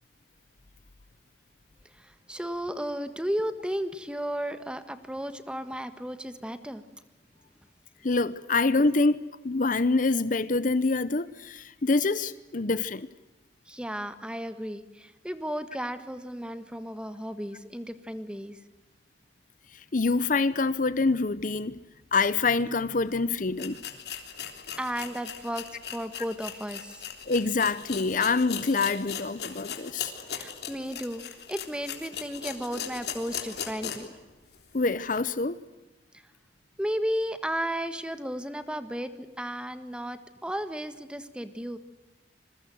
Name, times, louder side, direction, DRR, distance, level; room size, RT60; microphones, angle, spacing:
voice 1, 1.9-6.8 13.7-18.6 24.8-25.7 25.9-27.1 30.3-31.2 31.5-34.1 36.8-41.8, equal, 5° right, 1.5 m, -34 dB
voice 2, 8.0-13.1 19.9-21.8 22.1-23.8 27.3-30.1 34.7-35.6, left 3 dB, 50° left, 0.8 m, -26 dB
sound 1, 23.0-23.1 23.6-34.2 34.5-34.6 35.1-35.2, left 8 dB, 65° left, 3.5 m, -38 dB
26.5 x 22.0 x 7.8 m
head